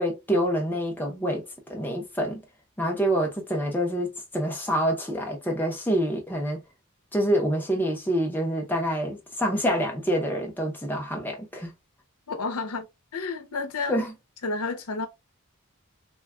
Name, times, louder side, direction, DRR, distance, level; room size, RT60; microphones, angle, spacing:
voice 1, 0.0-1.4 1.7-2.4 2.8-6.6 7.1-11.7 13.9-14.1, equal, 10° left, 0.6 m, -26 dB
voice 2, 12.3-12.9 13.1-14.0 14.4-15.1, left 3 dB, 90° left, 0.7 m, -30 dB
3.4 x 2.2 x 2.3 m
head